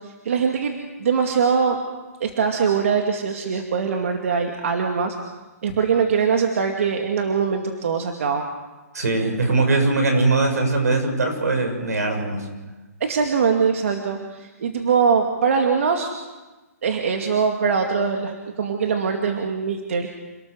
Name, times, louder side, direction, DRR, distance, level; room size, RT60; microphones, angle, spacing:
voice 1, 0.2-1.8 2.2-5.1 5.6-8.5 13.0-16.1 16.8-20.1, right 6 dB, 55° right, 3 dB, 2.3 m, -22 dB
voice 2, 8.9-12.5, right 3 dB, 85° right, 4 dB, 7.0 m, -21 dB
28.0 x 18.5 x 6.4 m, 1.2 s
hypercardioid pair, 165°, 9 cm